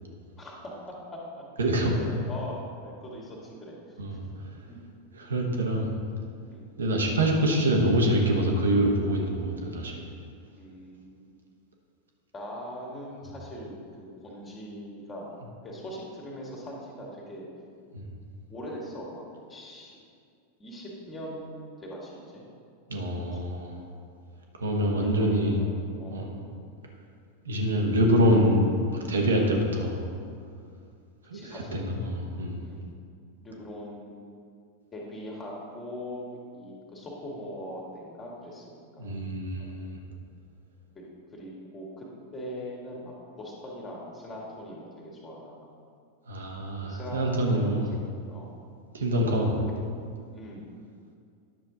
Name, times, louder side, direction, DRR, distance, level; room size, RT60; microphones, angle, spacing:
voice 1, 0.4-1.4 1.9-4.0 6.5-6.6 10.6-11.3 12.3-15.3 15.6-17.5 18.5-19.2 19.5-20.0 20.6-22.4 23.3-23.5 25.0-25.7 26.0-26.3 31.3-31.9 32.6-32.8 33.4-34.3 34.9-39.1 39.6-39.7 40.9-41.0 41.3-42.1 42.3-45.7 46.8-48.5 50.3-50.7, equal, 20° left, -3 dB, 2.1 m, -41 dB
voice 2, 1.6-2.0 4.0-4.2 5.1-5.9 6.8-10.1 17.9-18.0 22.9-23.7 24.6-25.6 26.1-26.3 27.4-28.6 28.9-30.0 31.3-32.6 39.0-40.0 46.3-47.9 48.9-49.6, right 1 dB, 70° right, 0 dB, 1.2 m, -25 dB
10.5 x 6.8 x 3.8 m, 2.3 s
figure-of-eight pair, 90°, 0 cm